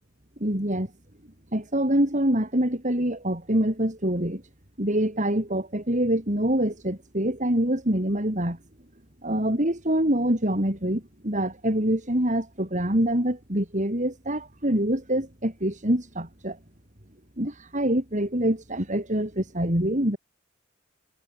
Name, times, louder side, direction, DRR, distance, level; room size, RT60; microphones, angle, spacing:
voice 1, 0.4-0.9 1.5-4.4 4.8-8.6 9.2-16.6 17.4-20.2, right 1 dB, 40° right, 5.9 m, -25 dB
head